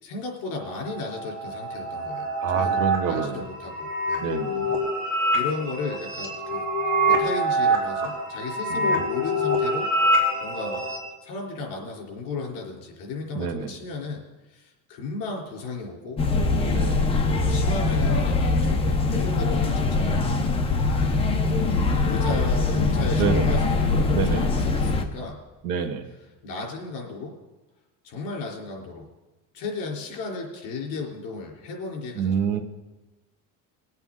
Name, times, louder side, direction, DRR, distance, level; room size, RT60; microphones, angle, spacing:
voice 1, 0.0-2.8 3.1-4.3 5.3-6.6 7.0-9.9 10.4-10.8 11.2-14.2 14.5-16.2 17.0-20.2 20.7-21.4 21.7-25.4 26.4-27.3 28.0-29.1 29.5-32.6, left 3 dB, 55° left, -1 dB, 3.6 m, -35 dB
sound 1, 0.6-11.0, right 1 dB, 35° right, 3.3 m, -25 dB
voice 2, 2.4-3.5 4.2-4.8 8.7-9.0 13.3-13.8 16.7-17.3 23.2-23.6 24.1-24.5 25.6-26.1 32.1-32.6, right 7 dB, 70° right, 5 dB, 1.5 m, -27 dB
sound 2, 16.2-25.0, left 3 dB, 15° left, 0.8 m, -22 dB
21.0 x 8.2 x 3.8 m, 1.1 s
cardioid pair, 175°, 37 cm